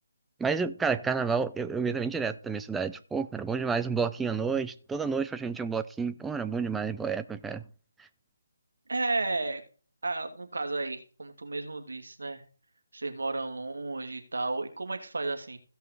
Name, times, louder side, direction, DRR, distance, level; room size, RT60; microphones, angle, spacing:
voice 1, 0.4-7.6, right 5 dB, 5° right, 0.5 m, -30 dB
voice 2, 8.9-9.6 10.0-12.4 12.9-15.6, right 3 dB, 85° right, 2.6 m, -33 dB
16.0 x 5.7 x 4.0 m
hypercardioid pair, 160°, 0 cm